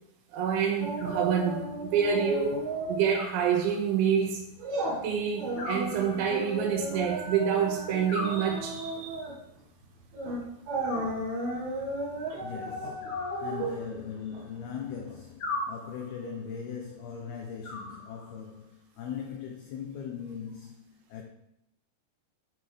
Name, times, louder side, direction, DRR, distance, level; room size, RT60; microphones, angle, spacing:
voice 1, 0.3-2.6 2.9-4.4 5.0-9.2, right 7 dB, 85° right, 3.7 m, -27 dB
sound 1, 0.8-3.2 3.5-3.7 4.2-15.1 15.5-15.6, right 1 dB, 60° right, 3.8 m, -35 dB
Animal, 1.0-1.9 3.1-4.1 5.6-6.7 8.1-9.1 10.8-11.7 13.0-14.1 15.4-16.3 17.6-18.5, left 2 dB, 45° left, 3.0 m, -40 dB
voice 2, 12.3-21.2, left 7 dB, 70° left, 2.5 m, -40 dB
11.5 x 8.5 x 3.7 m
omnidirectional pair, 5.4 m